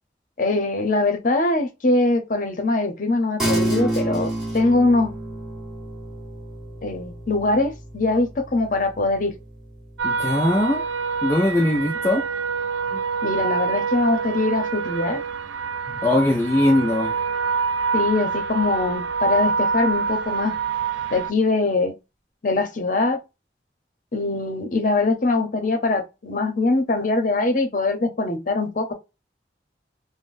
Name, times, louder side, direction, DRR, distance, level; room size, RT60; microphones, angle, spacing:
voice 1, 0.4-5.1 6.8-9.3 13.2-15.2 17.9-20.5 21.1-21.9 22.4-23.2 24.1-28.9, left 2 dB, 45° left, 0.7 m, -22 dB
sound 1, 3.4-13.1, right 1 dB, 5° right, 1.4 m, -31 dB
voice 2, 10.0-10.8 11.2-12.2 12.9-13.0 16.0-17.2, left 1 dB, 15° left, 0.3 m, -20 dB
sound 2, 10.0-21.3, right 5 dB, 80° right, 0.4 m, -26 dB
3.5 x 2.1 x 2.5 m
head